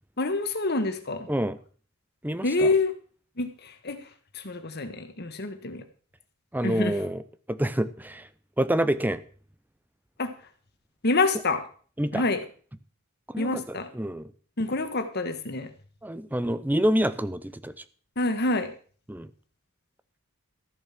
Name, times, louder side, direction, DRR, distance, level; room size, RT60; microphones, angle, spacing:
voice 1, 0.2-1.3 2.4-2.9 3.4-4.0 4.3-5.8 6.6-7.0 10.2-10.3 11.0-11.6 12.1-12.4 13.4-13.9 14.6-15.7 18.2-18.7, left 3 dB, 50° left, 8 dB, 1.5 m, -27 dB
voice 2, 1.3-1.6 2.2-2.7 6.5-7.2 7.5-8.3 8.6-9.2 12.0-12.2 13.3-14.3 16.0-17.7 19.1-19.3, right 1 dB, 10° right, 14 dB, 0.6 m, -27 dB
14.0 x 7.1 x 6.0 m, 0.43 s
head